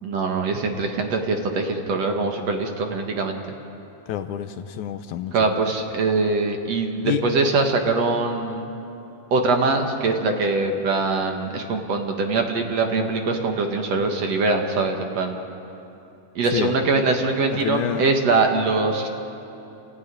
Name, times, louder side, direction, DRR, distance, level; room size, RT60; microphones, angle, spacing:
voice 1, 0.0-3.4 5.3-8.6 9.3-15.4 16.4-19.1, right 3 dB, 55° right, 3 dB, 2.4 m, -23 dB
voice 2, 4.1-5.4 7.0-7.2 16.5-16.7 17.6-18.0, left 11 dB, 75° left, 8 dB, 2.0 m, -27 dB
28.5 x 15.0 x 9.7 m, 2.9 s
omnidirectional pair, 3.9 m